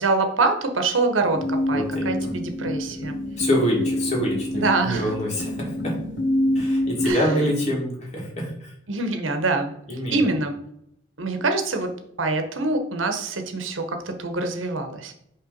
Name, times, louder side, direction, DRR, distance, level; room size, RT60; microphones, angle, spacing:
voice 1, 0.0-3.2 4.5-5.1 7.0-7.5 8.9-10.6 11.2-11.9 12.2-15.1, right 3 dB, 85° right, 6 dB, 1.0 m, -25 dB
sound 1, 1.3-7.1, left 1 dB, 65° left, 0.8 m, -27 dB
voice 2, 1.7-2.3 3.4-6.0 6.5-8.7 9.9-10.3, equal, 35° left, -3 dB, 1.9 m, -26 dB
5.8 x 3.3 x 5.2 m, 0.74 s
head